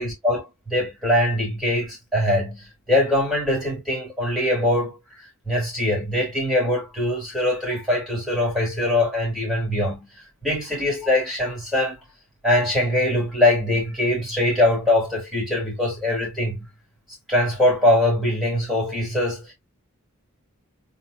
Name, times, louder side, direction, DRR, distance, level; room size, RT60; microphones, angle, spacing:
voice 1, 0.0-5.0 5.5-10.1 10.4-12.0 12.4-16.7 17.3-19.5, left 1 dB, ahead, 3.6 m, -22 dB
4.3 x 3.6 x 2.8 m
head